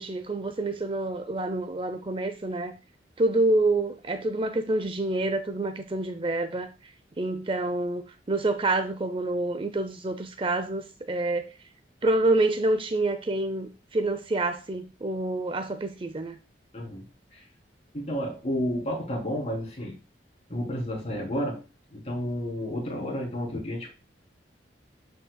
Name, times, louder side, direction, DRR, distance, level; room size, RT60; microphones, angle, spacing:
voice 1, 0.0-2.7 3.2-11.5 12.0-16.4, right 2 dB, 30° right, 0.6 m, -27 dB
voice 2, 16.7-17.0 17.3-17.4 17.9-19.9 20.5-21.6 21.9-23.9, equal, 35° left, 3.4 m, -31 dB
12.0 x 5.6 x 2.3 m
head